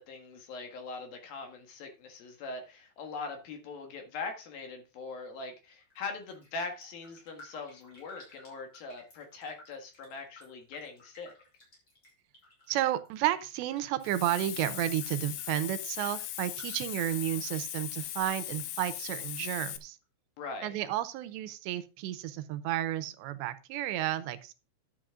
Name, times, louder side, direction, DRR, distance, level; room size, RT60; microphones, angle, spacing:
voice 1, 0.0-11.3 20.4-20.7, left 4 dB, 60° left, 3.3 m, -41 dB
Raindrop, 5.8-6.0 6.3-18.4 18.6-19.6 20.0-20.1, left 1 dB, 25° left, 6.0 m, -57 dB
voice 2, 12.7-20.0 20.6-24.5, right 13 dB, 80° right, 3.1 m, -32 dB
Hiss, 14.0-19.8, left 14 dB, 80° left, 2.9 m, -39 dB
11.5 x 8.5 x 3.7 m
omnidirectional pair, 5.0 m